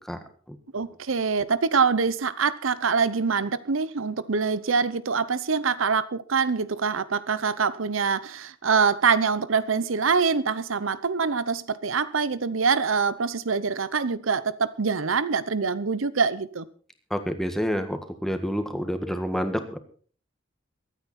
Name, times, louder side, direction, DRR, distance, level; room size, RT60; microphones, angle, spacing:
voice 1, 0.7-16.6, right 5 dB, 90° right, 0.8 m, -24 dB
voice 2, 17.1-19.8, equal, ahead, 1.6 m, -28 dB
23.5 x 9.4 x 4.2 m
head